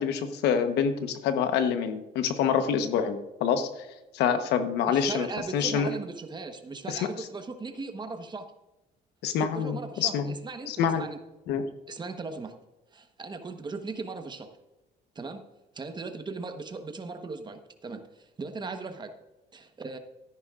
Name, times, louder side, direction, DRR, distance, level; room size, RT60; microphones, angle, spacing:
voice 1, 0.0-3.7 4.1-5.3 5.5-5.9 6.9-7.0 9.2-10.3 10.7-11.0 11.5-11.7, left 7 dB, 85° left, 9 dB, 1.1 m, -26 dB
voice 2, 4.9-8.5 9.4-11.2 11.9-12.5 12.9-14.5 15.1-15.4 15.7-19.1 19.5-20.0, right 3 dB, 25° right, 7 dB, 1.2 m, -38 dB
14.0 x 10.5 x 2.5 m, 1.0 s
cardioid pair, 110°, 17 cm